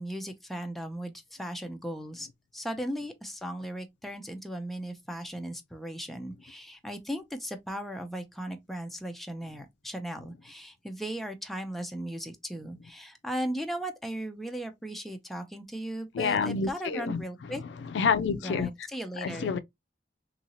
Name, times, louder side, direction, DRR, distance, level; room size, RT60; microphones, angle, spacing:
voice 1, 0.0-2.3 2.5-17.6 18.4-19.6, right 1 dB, ahead, 0.4 m, -37 dB
voice 2, 16.1-17.2 17.9-18.7 19.2-19.6, left 5 dB, 85° left, 0.3 m, -28 dB
2.7 x 2.7 x 2.8 m
head